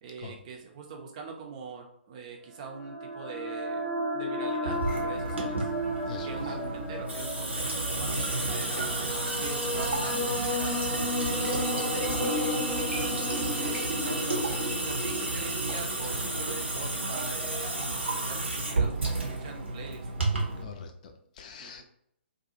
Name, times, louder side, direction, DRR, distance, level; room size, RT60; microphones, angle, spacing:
voice 1, 0.0-5.7 6.2-10.9 11.3-20.1 21.6-21.8, right 5 dB, 35° right, 2 dB, 0.6 m, -43 dB
sound 1, 2.6-16.2, left 1 dB, 20° left, 0.8 m, -34 dB
Water tap faucet / Sink (filling or washing) / Drip, 4.7-20.6, right 2 dB, 80° right, 0.8 m, -31 dB
voice 2, 20.6-21.8, left 5 dB, 40° left, 5 dB, 0.5 m, -43 dB
2.5 x 2.3 x 2.8 m, 0.71 s
figure-of-eight pair, 130°, 6 cm